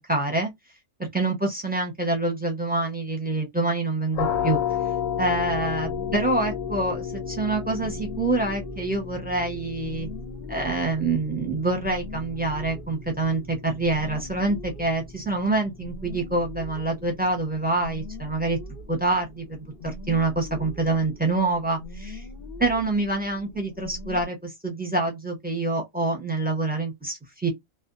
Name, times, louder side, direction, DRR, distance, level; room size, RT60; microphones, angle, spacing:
voice 1, 0.1-0.5 1.0-4.6 5.2-10.1 10.5-18.6 18.9-22.2 22.6-27.5, right 2 dB, 10° right, 0.7 m, -26 dB
sound 1, 4.1-15.6, left 8 dB, 85° left, 1.2 m, -33 dB
sound 2, 5.3-24.3, left 2 dB, 55° left, 0.9 m, -42 dB
2.6 x 2.3 x 2.4 m
omnidirectional pair, 1.3 m